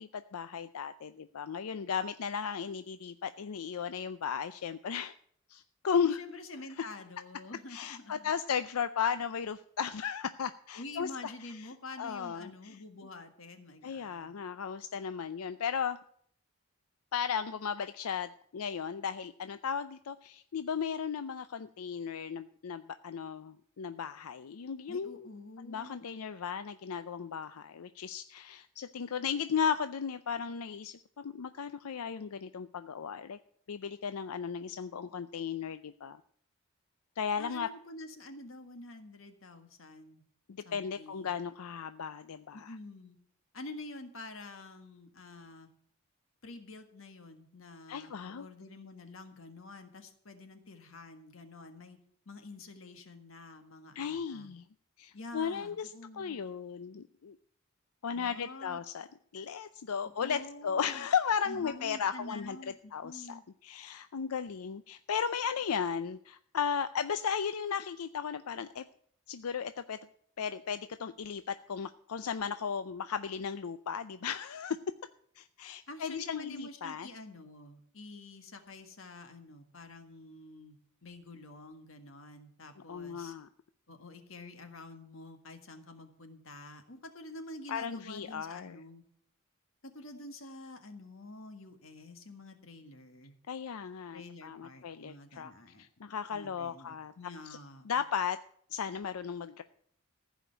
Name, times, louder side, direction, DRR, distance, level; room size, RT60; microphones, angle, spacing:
voice 1, 0.0-5.1 5.5-6.2 7.7-11.3 12.0-12.8 13.8-16.0 17.1-25.3 25.6-33.4 33.7-36.2 37.2-37.7 40.5-42.8 47.9-48.5 54.0-54.6 55.0-57.4 58.0-59.1 59.3-62.6 62.9-68.9 69.3-70.0 70.4-74.8 75.4-77.1 82.9-83.5 87.7-88.8 93.5-95.5 95.8-97.1 97.9-98.4 98.7-99.6, left 7 dB, 90° left, 11 dB, 0.5 m, -35 dB
voice 2, 6.0-8.3 10.7-14.3 24.9-26.1 37.4-40.2 40.6-41.4 42.5-43.2 43.5-45.7 46.4-52.0 52.2-54.5 55.1-56.5 58.1-58.8 60.0-61.0 61.5-63.4 75.9-83.3 83.9-89.0 89.8-93.4 94.1-95.9 96.3-98.0, left 2 dB, 65° left, 7 dB, 1.6 m, -48 dB
15.0 x 5.1 x 9.0 m, 0.63 s
head